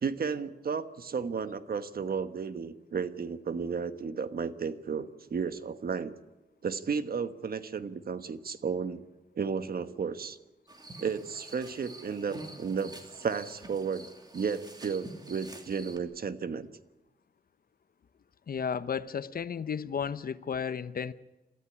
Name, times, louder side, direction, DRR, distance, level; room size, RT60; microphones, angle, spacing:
voice 1, 0.0-6.1 6.6-9.0 9.3-10.4 11.0-14.1 14.3-16.7, right 6 dB, 60° right, 1.3 m, -33 dB
sound 1, 10.7-16.0, right 2 dB, 25° right, 2.9 m, -47 dB
voice 2, 18.5-21.1, left 7 dB, 60° left, 0.9 m, -33 dB
27.0 x 14.0 x 9.8 m
wide cardioid pair, 110°, 17 cm